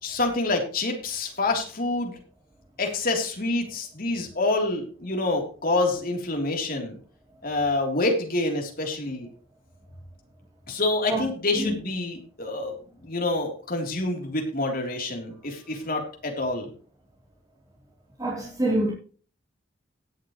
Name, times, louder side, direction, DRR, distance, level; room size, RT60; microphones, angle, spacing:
voice 1, 0.0-2.2 2.8-7.0 7.4-9.3 10.7-16.7, left 2 dB, 45° left, 3.4 m, -27 dB
voice 2, 18.2-18.9, right 1 dB, 20° right, 3.5 m, -25 dB
17.5 x 8.1 x 3.1 m
head